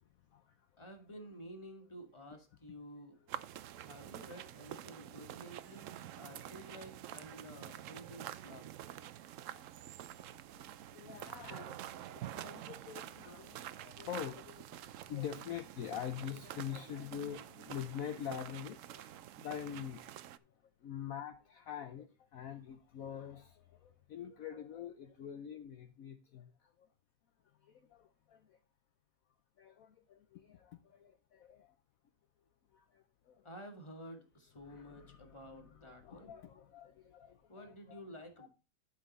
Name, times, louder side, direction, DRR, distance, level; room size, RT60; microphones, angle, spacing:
voice 1, 0.8-3.2 3.8-8.7 33.4-36.3 37.5-38.5, equal, 20° left, 1.8 m, -51 dB
sound 1, 3.3-20.4, right 12 dB, 70° right, 0.8 m, -48 dB
voice 2, 9.5-9.9 10.3-10.6 10.9-11.8 12.1-20.2 20.8-26.5 26.8-26.9 27.6-28.6 29.6-31.7 32.7-33.5 34.6-38.0 38.4-38.5, left 9 dB, 65° left, 1.1 m, -46 dB
11.5 x 5.7 x 4.1 m
omnidirectional pair, 1.8 m